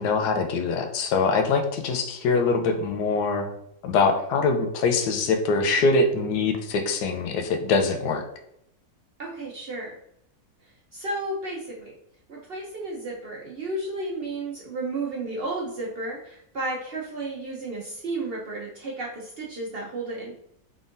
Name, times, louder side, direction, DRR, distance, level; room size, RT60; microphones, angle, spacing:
voice 1, 0.0-3.5 3.8-8.2, left 4 dB, 90° left, 5 dB, 1.2 m, -23 dB
voice 2, 9.2-9.9 10.9-11.9 12.3-20.3, right 2 dB, 55° right, -3 dB, 0.7 m, -33 dB
3.8 x 3.6 x 2.5 m, 0.74 s
omnidirectional pair, 1.7 m